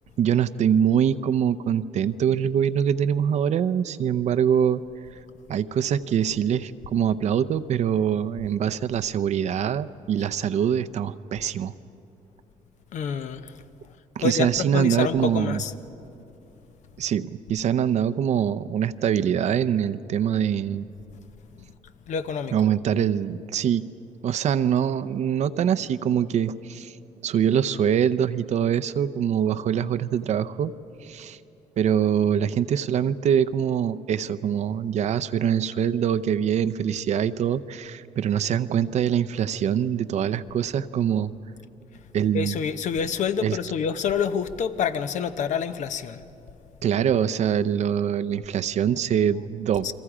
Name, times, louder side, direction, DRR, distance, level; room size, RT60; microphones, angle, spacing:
voice 1, 0.2-4.8 5.5-11.7 14.2-15.6 17.0-20.9 22.5-23.9 24.2-26.9 27.2-30.7 31.0-31.4 31.8-41.3 42.1-42.6 43.4-43.6 46.8-49.9, right 9 dB, 60° right, 0.7 m, -24 dB
voice 2, 12.9-13.5 14.2-15.7 22.1-22.7 42.3-46.2 49.8-49.9, left 7 dB, 65° left, 0.9 m, -27 dB
30.0 x 23.0 x 5.0 m
cardioid pair, 115°, 13 cm